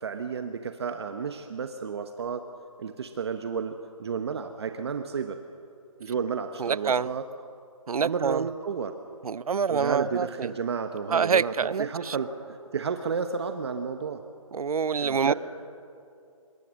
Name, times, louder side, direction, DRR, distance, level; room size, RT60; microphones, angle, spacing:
voice 1, 0.0-2.5 2.8-5.4 6.0-7.2 8.0-8.9 9.7-14.2 15.0-15.3, right 6 dB, 50° right, 7 dB, 1.1 m, -31 dB
voice 2, 6.6-7.1 7.9-8.4 9.2-10.5 11.1-12.2 14.5-15.3, right 6 dB, 85° right, 21 dB, 0.6 m, -26 dB
26.0 x 22.0 x 6.4 m, 2.6 s
hypercardioid pair, 165°, 18 cm